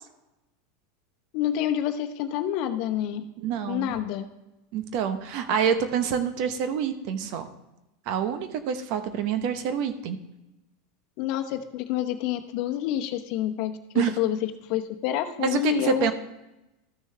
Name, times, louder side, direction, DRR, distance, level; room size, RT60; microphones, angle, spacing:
voice 1, 1.3-3.2 3.7-4.3 11.2-16.1, left 11 dB, 60° left, 8 dB, 0.9 m, -28 dB
voice 2, 3.4-3.9 4.7-7.5 8.1-10.2 13.9-14.1 15.4-16.1, right 7 dB, 60° right, 9 dB, 1.0 m, -27 dB
13.5 x 6.3 x 3.3 m, 0.95 s
supercardioid pair, 115°, 0 cm